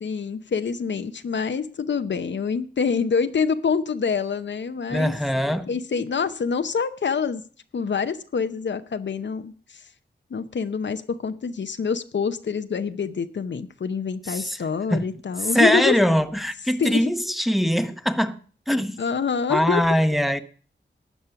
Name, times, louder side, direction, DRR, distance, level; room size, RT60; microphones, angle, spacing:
voice 1, 0.0-5.1 5.7-7.4 7.7-9.5 10.3-16.0 16.8-17.1 19.0-19.8, left 6 dB, 70° left, 0.8 m, -26 dB
voice 2, 4.9-5.7 14.3-14.6 14.9-15.1 15.4-18.4 18.7-19.0 19.5-20.4, equal, ahead, 0.9 m, -22 dB
12.5 x 8.3 x 5.8 m
wide cardioid pair, 70°, 19 cm